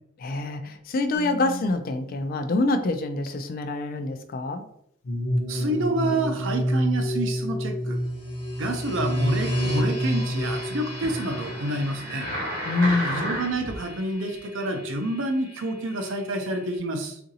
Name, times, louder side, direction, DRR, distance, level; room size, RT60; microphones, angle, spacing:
voice 1, 0.2-4.7 12.7-13.4, left 2 dB, 45° left, 8 dB, 0.3 m, -26 dB
sound 1, 1.1-2.2 5.0-12.1, equal, 80° left, 0.6 m, -28 dB
voice 2, 5.5-8.0 8.6-12.3 13.0-17.2, right 1 dB, 65° right, 5 dB, 0.6 m, -28 dB
sound 2, 8.0-16.8, left 1 dB, 15° right, 1.3 m, -41 dB
sound 3, 9.2-13.8 14.4-14.5, equal, 45° right, 1.2 m, -34 dB
3.8 x 2.5 x 2.7 m, 0.70 s
head